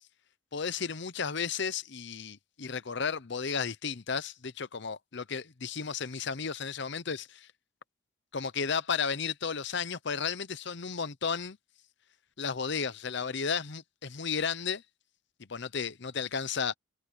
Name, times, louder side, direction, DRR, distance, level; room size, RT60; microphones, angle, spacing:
voice 1, 0.5-7.5 8.3-11.6 12.4-14.8 15.5-16.7, left 6 dB, 55° left, 0.8 m, -33 dB
head